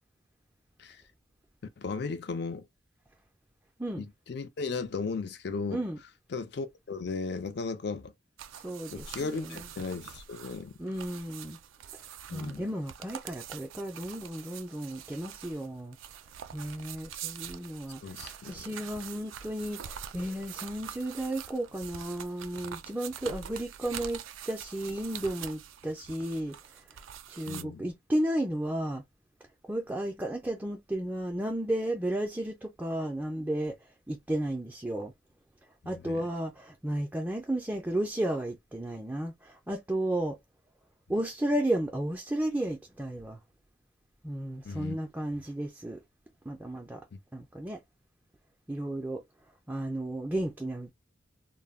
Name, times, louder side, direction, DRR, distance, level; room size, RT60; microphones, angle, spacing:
voice 1, 1.8-2.7 4.0-5.8 6.3-8.1 8.9-10.7 12.3-12.6 18.0-18.7 27.5-27.9 35.8-36.2 44.6-45.0, left 4 dB, 55° left, 0.4 m, -36 dB
sound 1, 8.4-27.6, right 9 dB, 85° right, 0.4 m, -45 dB
voice 2, 8.5-9.7 10.8-11.6 11.9-12.0 12.3-16.0 16.5-26.6 27.3-29.0 29.7-35.1 35.9-40.4 41.1-43.4 44.2-46.0 46.5-47.0 47.3-47.8 48.7-49.2 49.7-50.9, right 1 dB, 10° right, 0.3 m, -33 dB
2.2 x 2.0 x 3.4 m
head